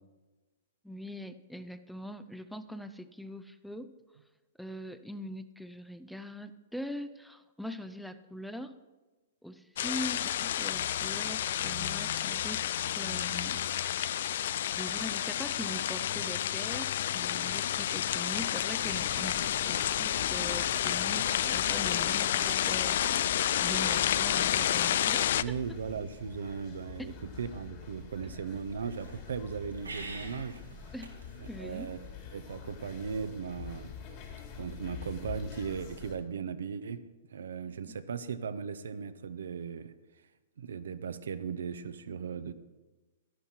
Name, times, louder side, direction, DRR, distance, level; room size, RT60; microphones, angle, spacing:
voice 1, 0.8-3.9 4.6-8.7 9.4-12.6 12.9-13.6 14.8-19.3 19.6-25.8 27.0-27.1 30.9-31.1 31.5-31.9 37.8-38.0, equal, ahead, 10 dB, 0.5 m, -42 dB
sound 1, 9.8-25.4, left 11 dB, 60° left, 0.3 m, -30 dB
sound 2, 16.0-32.7, right 3 dB, 90° right, 1.8 m, -54 dB
sound 3, 18.8-36.2, left 7 dB, 45° left, 2.9 m, -46 dB
voice 2, 25.3-30.6 31.4-32.0 32.3-33.9 34.6-37.0 37.3-39.9 40.6-42.5, right 6 dB, 70° right, 12 dB, 0.7 m, -37 dB
11.5 x 11.0 x 4.5 m, 1.2 s
hypercardioid pair, 115°, 0 cm